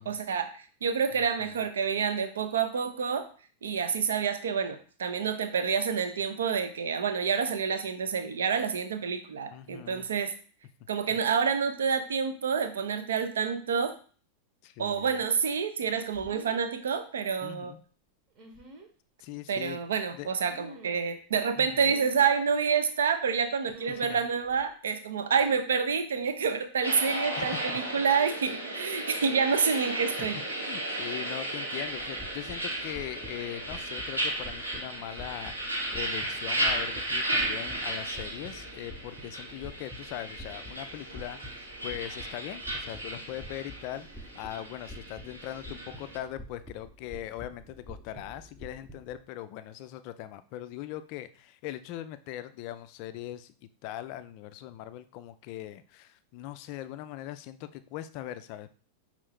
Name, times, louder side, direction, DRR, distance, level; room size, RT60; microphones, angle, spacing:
voice 1, 0.0-3.3 3.6-10.3 10.9-13.9 14.8-17.7 19.5-30.4, right 6 dB, 65° right, 9 dB, 0.5 m, -28 dB
voice 2, 9.5-10.1 11.1-11.2 14.6-15.2 17.4-17.8 19.2-19.8 20.1-20.3 21.6-21.9 23.9-24.2 27.4-27.8 30.2-53.5 53.8-58.8, left 13 dB, 45° left, 12 dB, 0.3 m, -41 dB
sound 1, 15.9-16.7 18.3-18.9 20.5-21.1 21.8-22.3 23.7-24.2 24.4-24.7, right 2 dB, 35° right, 0.9 m, -48 dB
sound 2, 26.8-46.2, right 1 dB, 80° right, 0.9 m, -34 dB
sound 3, 31.8-49.2, equal, 5° right, 0.7 m, -48 dB
5.3 x 2.5 x 3.5 m, 0.41 s
figure-of-eight pair, 90°, 0 cm